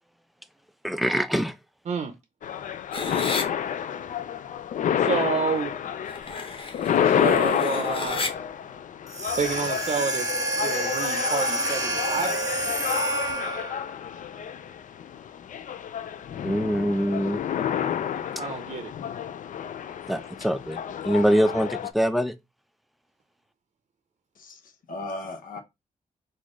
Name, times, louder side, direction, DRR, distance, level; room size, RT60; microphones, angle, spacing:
voice 1, 0.8-1.6 16.4-17.4 20.1-20.8 21.0-22.3, equal, ahead, 0.4 m, -24 dB
sound 1, 2.4-21.9, left 9 dB, 65° left, 0.4 m, -29 dB
sound 2, 2.9-3.4 6.1-8.3, left 4 dB, 40° left, 0.8 m, -33 dB
voice 2, 5.0-5.7 7.0-8.3 9.4-10.3 10.6-12.3 18.4-18.9, right 5 dB, 50° right, 0.6 m, -29 dB
sound 3, 9.1-13.8, right 1 dB, 25° right, 0.8 m, -28 dB
voice 3, 24.4-25.6, left 2 dB, 80° left, 0.7 m, -37 dB
4.1 x 2.5 x 3.0 m
cardioid pair, 95°, 14 cm